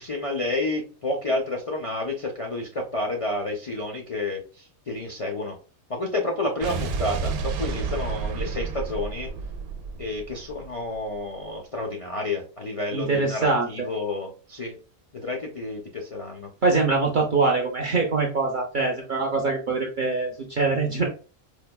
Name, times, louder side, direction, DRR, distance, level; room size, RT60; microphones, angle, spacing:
voice 1, 0.0-5.6 5.9-9.3 10.0-14.8 15.1-16.5, left 2 dB, 50° left, 0 dB, 0.4 m, -30 dB
Explosion, 6.6-10.9, right 5 dB, 90° right, 1.0 m, -30 dB
voice 2, 12.9-13.9 16.6-21.1, right 3 dB, 55° right, 1 dB, 0.6 m, -23 dB
4.7 x 2.2 x 2.2 m, 0.36 s
omnidirectional pair, 1.5 m